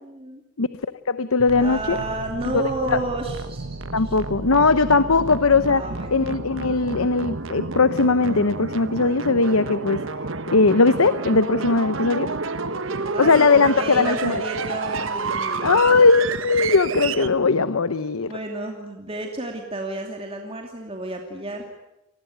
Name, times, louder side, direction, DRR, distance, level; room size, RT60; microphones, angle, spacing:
voice 1, 0.0-0.4 1.6-4.2 5.7-6.2 13.1-16.0 18.2-21.6, right 2 dB, 25° right, 2 dB, 2.6 m, -31 dB
voice 2, 1.1-2.0 2.4-3.0 3.9-5.8 6.1-10.0 10.5-12.3 13.2-14.4 15.6-18.3, left 4 dB, 75° left, 13 dB, 0.9 m, -19 dB
sound 1, 1.4-17.3, right 3 dB, 60° right, 1.2 m, -30 dB
29.5 x 20.0 x 9.3 m, 0.95 s
head